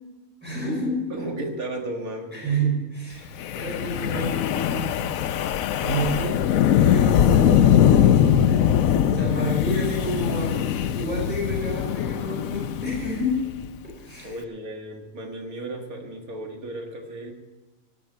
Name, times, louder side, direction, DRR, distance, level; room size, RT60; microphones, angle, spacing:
voice 1, 0.4-1.0 2.3-5.0 5.8-8.7 9.0-13.3 13.8-14.4, right 1 dB, 5° right, -5 dB, 4.9 m, -29 dB
voice 2, 1.1-2.6 9.4-9.5 13.0-13.2 14.2-17.3, right 1 dB, 80° right, 2 dB, 2.2 m, -34 dB
Wind, 3.4-13.7, left 10 dB, 75° left, 1.0 m, -21 dB
18.0 x 6.2 x 8.9 m, 1.2 s
omnidirectional pair, 1.5 m